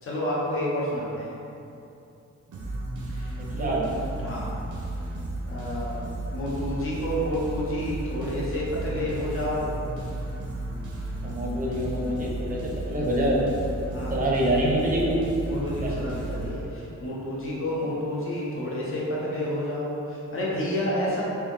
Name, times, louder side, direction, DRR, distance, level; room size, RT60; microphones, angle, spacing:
voice 1, 0.0-1.3 3.1-3.7 4.2-4.6 5.5-6.0 6.3-9.8 13.9-14.2 15.5-21.2, left 1 dB, 45° left, -6 dB, 0.9 m, -30 dB
sound 1, 2.5-17.1, right 1 dB, 90° right, 0.6 m, -34 dB
voice 2, 3.4-3.8 11.2-13.4 14.1-15.2 15.8-15.9, right 1 dB, 30° right, -3 dB, 0.6 m, -26 dB
3.6 x 2.9 x 3.3 m, 2.7 s
wide cardioid pair, 145°, 29 cm